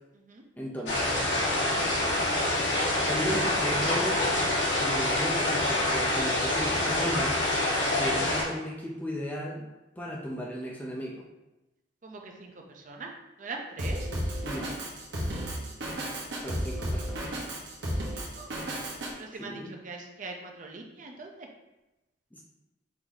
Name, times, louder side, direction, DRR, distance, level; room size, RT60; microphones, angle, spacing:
voice 1, 0.6-1.1 2.1-2.2 3.0-4.3 4.8-7.4 8.0-9.7 10.0-11.2 14.4-14.8 16.4-17.3 19.4-19.7 22.3-22.4, equal, 10° left, -2 dB, 0.5 m, -35 dB
sound 1, 0.9-8.4, left 1 dB, 75° left, 1.2 m, -26 dB
voice 2, 12.0-12.5 12.8-13.1 13.4-14.0 18.1-18.5 19.2-21.5, right 3 dB, 45° right, 2 dB, 0.6 m, -41 dB
Drum kit, 13.8-19.1, equal, 70° right, 1.0 m, -33 dB
4.6 x 2.7 x 3.9 m, 0.99 s
head